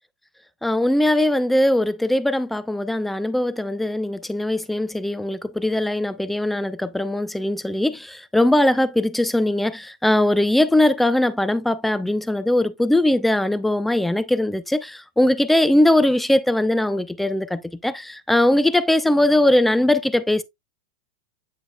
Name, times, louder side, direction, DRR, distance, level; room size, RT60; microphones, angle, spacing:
voice 1, 0.6-20.4, left 1 dB, 5° left, 0.5 m, -20 dB
8.5 x 5.1 x 2.3 m
supercardioid pair, 135°, 5 cm